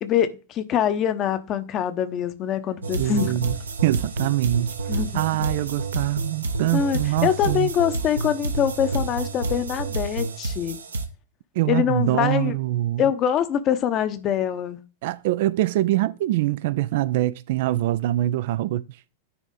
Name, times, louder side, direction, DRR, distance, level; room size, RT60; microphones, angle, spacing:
voice 1, 0.0-3.3 4.9-5.2 6.7-10.8 11.7-12.5 13.0-14.8, left 9 dB, 35° left, 0.8 m, -24 dB
sound 1, 2.8-11.0, right 3 dB, 75° right, 0.9 m, -29 dB
voice 2, 3.0-3.6 3.8-7.7 11.6-13.0 15.0-18.8, right 15 dB, 50° right, 0.3 m, -24 dB
9.7 x 3.5 x 3.9 m
figure-of-eight pair, 90°, 0 cm